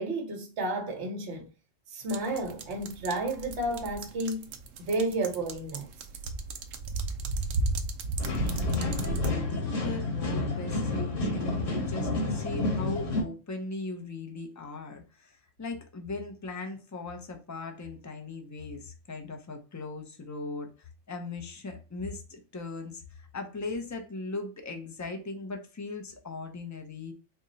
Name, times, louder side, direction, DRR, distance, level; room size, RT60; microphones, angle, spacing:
voice 1, 0.0-1.5 1.9-4.5 4.8-5.9, right 2 dB, 60° right, 1.2 m, -31 dB
sound 1, 2.1-9.3, right 3 dB, 80° right, 1.0 m, -34 dB
sound 2, 8.2-13.2, left 2 dB, 70° left, 1.6 m, -30 dB
voice 2, 8.7-27.1, left 3 dB, 30° left, 0.3 m, -39 dB
4.2 x 2.1 x 3.9 m
omnidirectional pair, 1.3 m